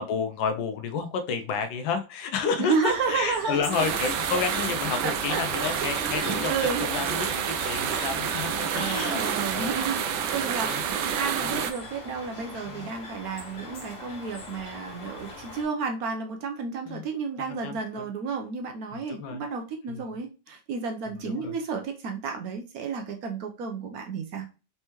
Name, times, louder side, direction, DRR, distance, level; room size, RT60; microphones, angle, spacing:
voice 1, 0.0-6.5 6.8-9.2 9.5-9.8 10.6-10.8 11.4-11.6 12.7-12.9 16.8-17.0 17.4-18.0 18.9-19.4 19.9-20.0 21.1-21.6, left 6 dB, 80° left, 8 dB, 1.4 m, -31 dB
voice 2, 2.6-3.9 5.0-5.8 6.5-6.9 8.7-10.0 10.3-24.5, right 5 dB, 65° right, 4 dB, 0.9 m, -31 dB
sound 1, 2.8-15.6, left 2 dB, 45° left, 1.4 m, -41 dB
sound 2, 3.7-11.7, right 8 dB, 85° right, 1.4 m, -29 dB
4.3 x 3.4 x 2.9 m, 0.32 s
omnidirectional pair, 2.1 m